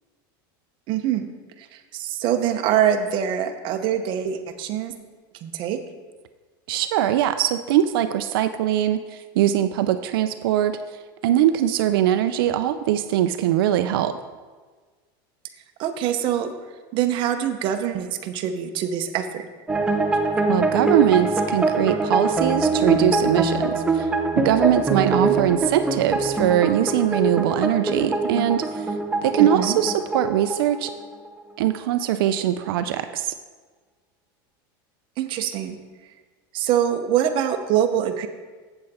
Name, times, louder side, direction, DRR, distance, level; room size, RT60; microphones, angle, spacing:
voice 1, 0.9-1.3 1.6-4.9 5.4-5.8 15.8-16.5 16.9-19.5 24.9-25.4 28.2-28.3 29.4-29.8 35.2-35.8 36.5-38.3, right 10 dB, 45° right, 7 dB, 0.8 m, -24 dB
voice 2, 6.7-10.8 11.2-14.2 20.5-24.1 24.4-29.0 29.2-30.9 31.6-33.3, right 11 dB, 90° right, 9 dB, 0.4 m, -22 dB
sound 1, 19.7-31.4, right 3 dB, 10° right, 0.7 m, -23 dB
7.8 x 7.5 x 4.2 m, 1.4 s
supercardioid pair, 140°, 12 cm